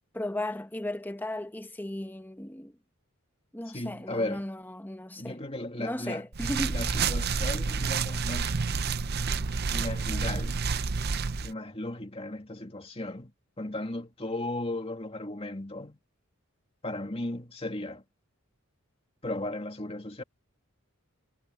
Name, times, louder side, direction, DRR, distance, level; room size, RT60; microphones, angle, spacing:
voice 1, 0.1-2.7 3.5-5.4 5.8-6.8, left 1 dB, 10° left, 1.1 m, -35 dB
voice 2, 3.7-4.5 5.2-6.3 6.7-8.6 9.7-10.6 11.4-13.3 13.6-16.0 16.8-18.0 19.2-20.2, left 2 dB, 25° left, 2.5 m, -35 dB
sound 1, 6.3-11.5, right 5 dB, 50° right, 0.7 m, -29 dB
head